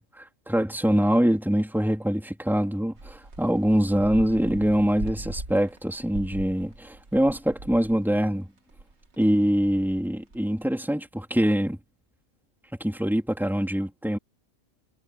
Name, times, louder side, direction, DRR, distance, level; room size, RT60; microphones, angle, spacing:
voice 1, 0.0-8.5 9.2-11.8 12.8-14.2, equal, ahead, 3.8 m, -24 dB
sound 1, 3.0-8.4 8.7-10.4, right 2 dB, 55° right, 2.7 m, -40 dB
omnidirectional pair, 1.4 m